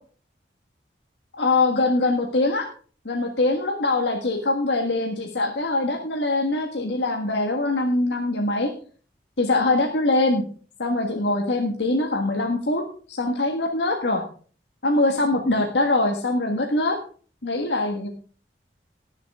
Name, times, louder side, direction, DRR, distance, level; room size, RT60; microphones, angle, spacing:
voice 1, 1.4-2.7 3.0-8.7 9.4-10.4 10.8-12.8 13.1-14.2 14.8-17.0 17.4-18.1, left 2 dB, 80° left, 2 dB, 1.6 m, -23 dB
18.5 x 7.5 x 3.6 m, 0.41 s
head